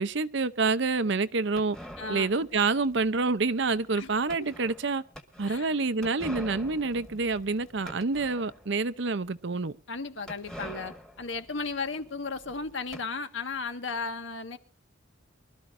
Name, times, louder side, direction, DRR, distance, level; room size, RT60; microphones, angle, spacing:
voice 1, 0.0-1.8 2.1-5.0 5.4-9.7, right 3 dB, 60° right, 0.7 m, -27 dB
sound 1, 1.6-8.8 9.2-9.3 9.5-9.6 10.3-13.0, equal, 5° left, 1.6 m, -45 dB
voice 2, 2.0-2.5 4.0-4.1 4.4-4.5 5.5-5.7 9.9-14.6, left 4 dB, 70° left, 1.6 m, -35 dB
24.5 x 13.0 x 2.6 m
head